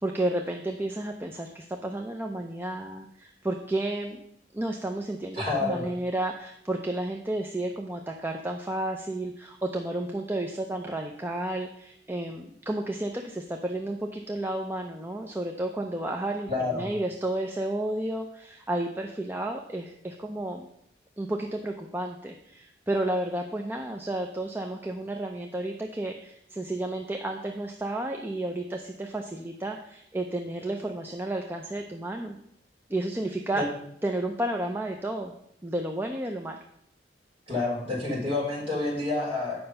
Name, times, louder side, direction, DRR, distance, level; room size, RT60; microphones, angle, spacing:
voice 1, 0.0-4.2 4.5-20.6 21.2-32.4 32.9-33.6 34.0-35.3 35.6-36.6, right 1 dB, 10° right, 3 dB, 0.5 m, -32 dB
voice 2, 5.3-5.8 16.5-16.9 33.5-33.6 37.5-39.7, left 2 dB, 35° right, -5 dB, 4.1 m, -29 dB
8.8 x 5.7 x 5.4 m, 0.72 s
head